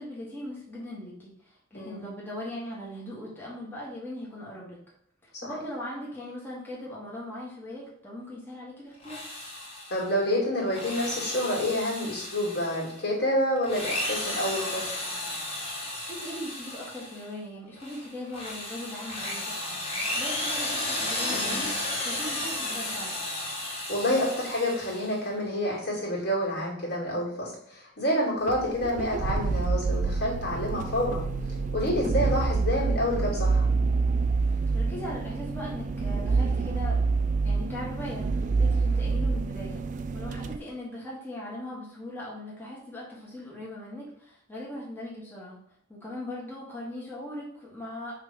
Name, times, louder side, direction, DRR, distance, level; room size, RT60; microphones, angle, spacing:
voice 1, 0.0-4.8 5.2-9.3 16.1-23.2 34.7-37.0 37.4-45.6 45.9-48.1, left 1 dB, 10° left, -6 dB, 1.6 m, -39 dB
voice 2, 1.7-2.1 5.4-5.5 9.9-14.9 21.3-21.7 23.9-31.2 31.7-33.6, left 1 dB, 55° left, -3 dB, 2.4 m, -28 dB
Drill, 8.9-10.1 10.6-13.0 13.6-17.3 17.8-25.2, left 1 dB, 30° left, 1.4 m, -33 dB
sound 1, 28.5-40.6, right 4 dB, 40° right, 0.4 m, -27 dB
5.7 x 3.4 x 5.1 m, 0.67 s
head